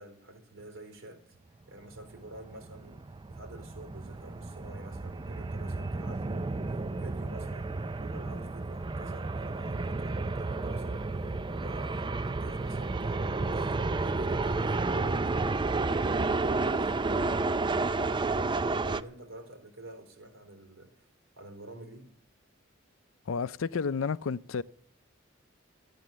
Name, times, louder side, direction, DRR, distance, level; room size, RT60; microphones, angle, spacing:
voice 1, 0.0-1.4 1.7-7.7 8.0-18.4 18.8-21.1 21.3-22.1, right 1 dB, 85° right, 4.1 m, -49 dB
sound 1, 1.9-19.0, right 3 dB, 25° right, 0.5 m, -31 dB
voice 2, 23.3-24.6, left 5 dB, 80° left, 0.5 m, -31 dB
14.0 x 9.2 x 7.4 m
head